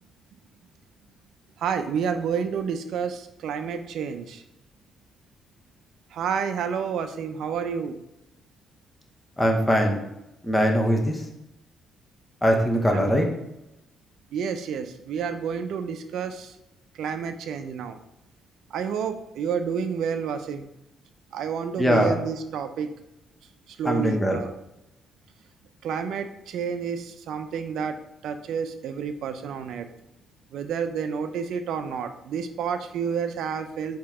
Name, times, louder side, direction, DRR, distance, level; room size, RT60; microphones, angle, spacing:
voice 1, 1.6-4.4 6.1-7.9 12.9-13.1 14.3-16.5 17.0-18.0 18.7-20.6 21.3-22.9 23.8-24.5 25.8-28.0 28.2-29.9 30.5-34.0, right 7 dB, 75° right, 8 dB, 0.4 m, -29 dB
voice 2, 9.4-10.0 10.4-11.2 12.4-13.3 21.8-22.1 23.8-24.4, equal, 10° left, 2 dB, 0.8 m, -21 dB
4.5 x 2.8 x 3.5 m, 0.88 s
cardioid pair, 90°, 0 cm